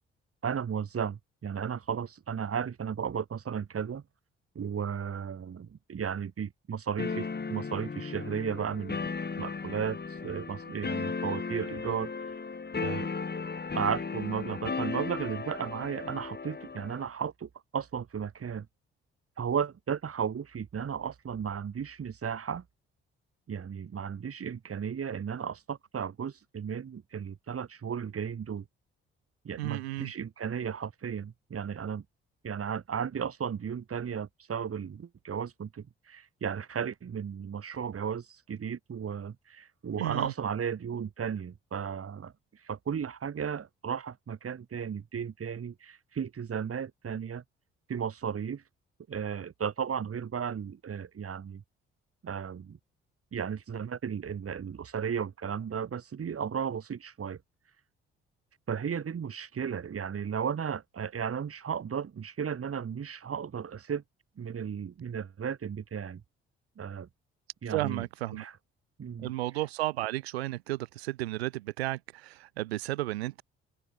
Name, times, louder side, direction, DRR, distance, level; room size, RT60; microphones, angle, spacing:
voice 1, 0.4-4.0 4.6-9.1 9.4-12.1 12.8-13.1 13.7-18.7 19.4-22.6 23.5-28.7 29.4-32.0 32.4-42.3 42.6-47.4 47.9-48.6 49.1-51.6 52.2-52.8 53.3-57.4 58.7-64.0 64.4-66.2 66.8-67.1 67.6-68.1 68.3-68.5 69.0-69.3, right 7 dB, 50° right, 4.0 m, -34 dB
sound 1, 7.0-17.1, left 4 dB, 35° left, 3.5 m, -36 dB
voice 2, 29.6-30.1 40.0-40.3 67.7-68.4 69.2-73.4, right 17 dB, 90° right, 2.5 m, -33 dB
open air
hypercardioid pair, 45°, 30 cm